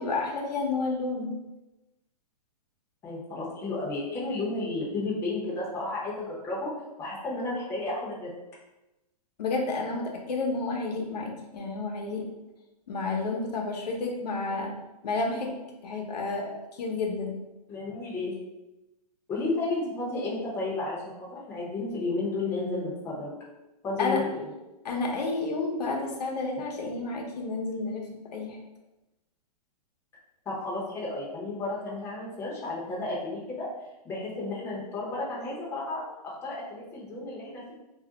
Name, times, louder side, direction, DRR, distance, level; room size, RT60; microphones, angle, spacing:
voice 1, 0.0-1.3 9.4-12.3 12.9-14.7 15.0-15.6 15.8-17.3 24.0-24.2 24.8-28.1 28.3-28.6, left 3 dB, 80° left, 0 dB, 0.8 m, -30 dB
voice 2, 3.0-6.7 7.0-8.3 17.7-18.3 19.3-23.3 23.8-24.5 30.5-33.7 34.0-37.7, left 2 dB, 10° left, -6 dB, 0.6 m, -32 dB
2.4 x 2.1 x 3.8 m, 1.0 s
hypercardioid pair, 155°, 20 cm